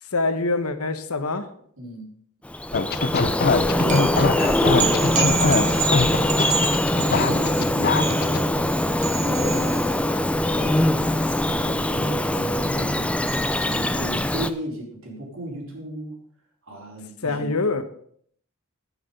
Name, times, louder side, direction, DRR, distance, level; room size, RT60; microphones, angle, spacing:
voice 1, 0.1-1.5 17.2-17.8, left 3 dB, 75° left, 11 dB, 1.1 m, -24 dB
voice 2, 1.8-2.1 3.7-6.6 6.8-8.8 9.2-10.1 10.4-13.1 13.6-16.2 16.6-17.5, right 1 dB, 60° right, -2 dB, 4.1 m, -34 dB
Bird vocalization bird call bird song, 2.4-14.5, left 1 dB, 5° left, 0.4 m, -23 dB
sound 1, 2.7-8.4, left 4 dB, 45° left, 0.6 m, -22 dB
sound 2, 3.8-14.5, right 7 dB, 35° right, 1.0 m, -32 dB
10.0 x 9.3 x 5.2 m, 0.62 s
head